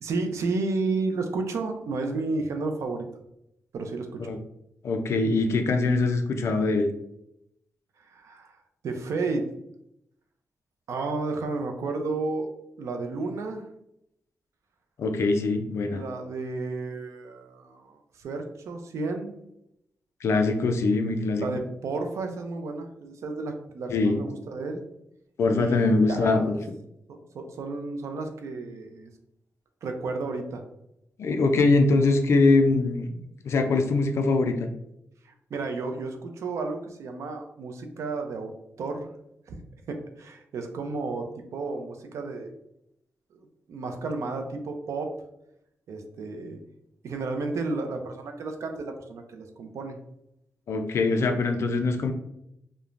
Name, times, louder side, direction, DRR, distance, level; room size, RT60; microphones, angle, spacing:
voice 1, 0.0-3.1 3.7-4.4 8.1-8.6 8.8-9.5 10.9-12.5 12.8-13.6 15.9-19.4 21.4-24.8 25.6-26.6 27.1-29.1 29.8-30.6 35.2-38.5 38.8-39.1 39.5-39.6 39.9-42.5 43.3-45.1 45.9-46.6 47.0-50.0, right 3 dB, 75° right, 5 dB, 0.4 m, -32 dB
voice 2, 4.8-6.9 15.0-16.0 20.2-21.5 23.9-24.2 25.4-26.6 31.2-33.1 33.4-34.7 50.7-52.1, left 3 dB, 65° left, 6 dB, 0.3 m, -23 dB
3.1 x 2.0 x 2.4 m, 0.79 s
wide cardioid pair, 140°, 5 cm